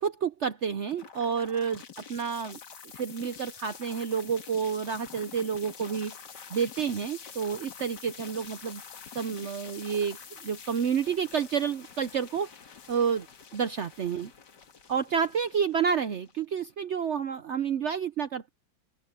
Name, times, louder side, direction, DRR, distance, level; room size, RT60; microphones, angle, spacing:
voice 1, 0.0-1.8 2.1-2.6 2.9-6.1 6.5-8.8 9.1-12.5 12.9-13.3 13.5-14.3 14.9-18.5, right 7 dB, 75° right, 0.6 m, -29 dB
sound 1, 0.9-16.9, left 6 dB, 60° left, 2.3 m, -47 dB
open air
omnidirectional pair, 2.1 m